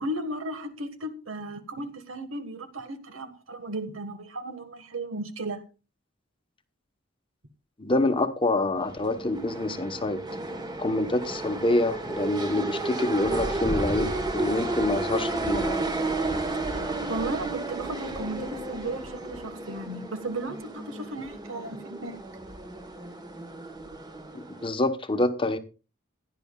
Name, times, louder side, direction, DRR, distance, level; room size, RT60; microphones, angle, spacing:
voice 1, 0.0-5.6 16.7-22.2, right 2 dB, 80° right, 1.4 m, -35 dB
voice 2, 7.8-10.2 10.8-15.8 24.3-25.6, left 2 dB, 25° left, 0.9 m, -26 dB
sound 1, 8.7-24.7, right 2 dB, 20° right, 1.2 m, -32 dB
16.5 x 10.5 x 2.3 m
head